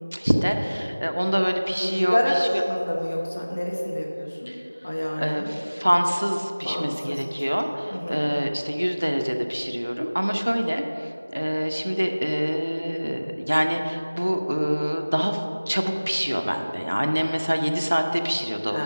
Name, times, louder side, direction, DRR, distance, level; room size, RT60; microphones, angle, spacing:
voice 1, 0.1-2.6 4.5-4.6 5.2-18.8, equal, 70° right, 4 dB, 0.9 m, -25 dB
voice 2, 1.8-4.6 4.8-5.5 6.6-7.6 7.9-8.2 18.7-18.8, equal, 35° left, -1 dB, 1.1 m, -28 dB
9.2 x 5.1 x 6.0 m, 3.0 s
figure-of-eight pair, 175°, 0 cm